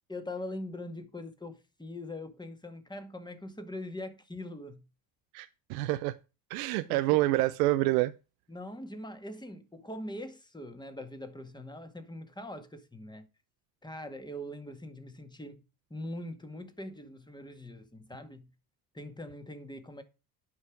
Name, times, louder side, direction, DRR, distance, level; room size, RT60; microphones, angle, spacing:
voice 1, 0.1-4.8 6.9-7.2 8.5-13.3 13.8-15.6 15.9-18.5 18.9-20.0, left 1 dB, 10° left, 1.9 m, -42 dB
voice 2, 5.3-6.1 6.5-8.1, right 18 dB, 85° right, 0.6 m, -27 dB
9.6 x 5.6 x 5.0 m
hypercardioid pair, 60°, 48 cm